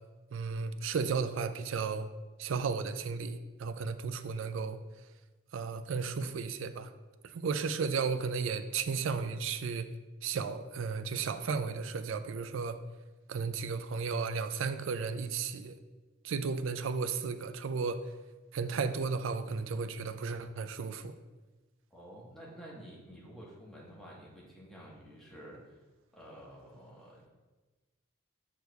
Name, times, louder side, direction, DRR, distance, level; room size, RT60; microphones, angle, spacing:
voice 1, 0.3-2.1 2.4-4.8 5.5-6.9 7.2-9.9 10.2-12.8 13.3-15.8 16.2-18.0 18.5-21.1, right 5 dB, 65° right, 10 dB, 0.4 m, -34 dB
voice 2, 21.9-25.6 26.1-27.3, equal, ahead, -5 dB, 1.3 m, -50 dB
6.7 x 6.1 x 2.3 m, 1.2 s
head